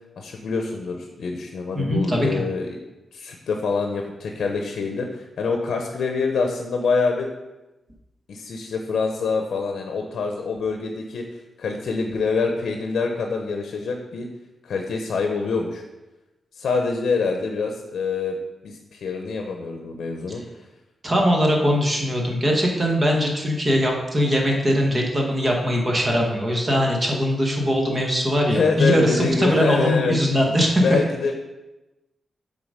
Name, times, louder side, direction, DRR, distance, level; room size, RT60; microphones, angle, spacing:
voice 1, 0.2-2.8 3.1-7.3 8.3-11.2 11.6-14.3 14.6-15.8 16.5-18.4 18.6-20.4 28.5-30.2 30.8-31.3, left 4 dB, 80° left, 3 dB, 0.7 m, -25 dB
voice 2, 1.7-2.3 21.0-30.8, equal, 30° right, 0 dB, 1.4 m, -21 dB
7.2 x 3.9 x 5.1 m, 1.0 s
wide cardioid pair, 110°, 0 cm